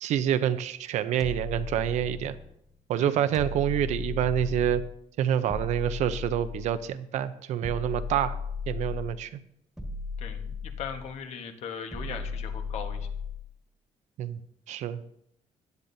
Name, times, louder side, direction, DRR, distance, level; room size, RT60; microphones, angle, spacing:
voice 1, 0.0-2.3 2.9-4.8 5.2-8.4 8.7-9.4 14.2-14.4 14.7-15.0, right 10 dB, 70° right, 12 dB, 0.7 m, -27 dB
sound 1, 1.2-2.5 3.3-5.0 5.5-6.9 7.6-9.2 9.8-11.2 11.9-13.5, left 4 dB, ahead, 1.6 m, -36 dB
voice 2, 10.2-13.1, left 6 dB, 60° left, 5 dB, 1.4 m, -39 dB
16.5 x 10.5 x 2.7 m, 0.75 s
cardioid pair, 150°, 12 cm